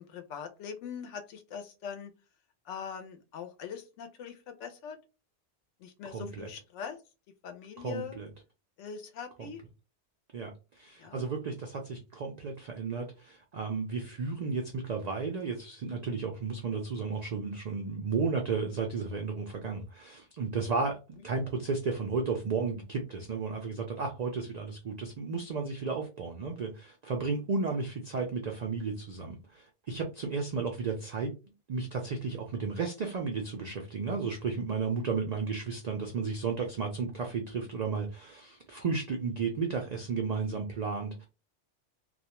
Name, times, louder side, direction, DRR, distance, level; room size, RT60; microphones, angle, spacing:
voice 1, 0.0-2.1 2.7-5.0 5.8-7.0 7.4-8.2 8.8-9.6 11.0-11.2, left 7 dB, 80° left, 6 dB, 0.9 m, -42 dB
voice 2, 6.0-6.5 7.8-8.3 9.4-9.5 10.3-21.0 21.2-31.3 31.7-41.2, right 4 dB, 75° right, 2 dB, 0.3 m, -33 dB
2.4 x 2.1 x 2.8 m, 0.30 s
omnidirectional pair, 1.2 m